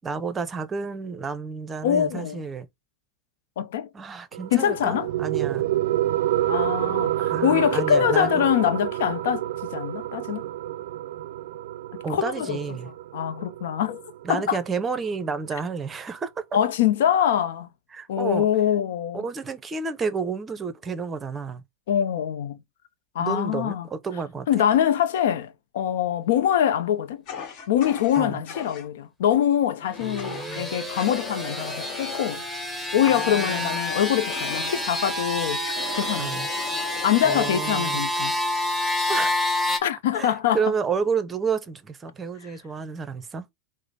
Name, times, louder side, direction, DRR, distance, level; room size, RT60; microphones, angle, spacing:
voice 1, 0.0-2.7 3.9-5.7 7.2-8.4 12.0-12.9 14.2-16.4 17.9-18.5 19.1-21.6 23.2-24.6 28.1-28.4 30.0-30.7 33.0-33.8 36.2-36.5 37.2-38.0 39.1-39.3 40.1-43.5, right 5 dB, 20° right, 0.6 m, -30 dB
voice 2, 1.8-2.4 3.6-3.9 4.5-5.1 6.5-9.5 9.7-10.4 12.1-12.6 13.1-14.0 14.3-14.6 16.5-17.7 18.1-19.2 21.9-22.6 23.1-23.9 24.5-27.2 27.7-32.4 32.9-35.6 35.9-36.3 37.0-38.4 39.8-40.6, left 10 dB, 70° left, 0.5 m, -24 dB
sound 1, 4.3-15.3, right 13 dB, 65° right, 0.4 m, -28 dB
Fire, 27.3-28.9 30.2-30.6 30.9-35.1 35.6-37.5, left 4 dB, 45° left, 1.3 m, -39 dB
sound 2, 29.8-39.8, left 1 dB, 5° left, 1.1 m, -28 dB
4.8 x 2.1 x 4.0 m
hypercardioid pair, 95°, 0 cm